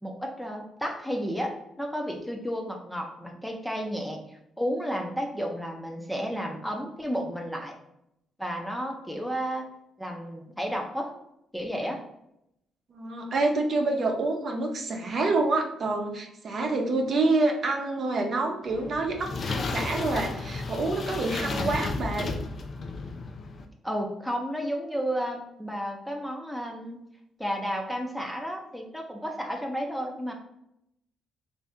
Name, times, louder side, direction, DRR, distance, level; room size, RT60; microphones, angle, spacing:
voice 1, 0.0-7.7 8.4-9.7 10.0-11.1 11.5-12.0 21.5-21.7 23.8-27.0 27.4-30.3, equal, ahead, 1 dB, 0.6 m, -32 dB
voice 2, 12.9-22.3, right 2 dB, 55° right, 1 dB, 0.7 m, -27 dB
sound 1, 18.7-23.7, left 3 dB, 45° left, 0.4 m, -33 dB
3.3 x 2.7 x 3.5 m, 0.80 s
cardioid pair, 90°, 0 cm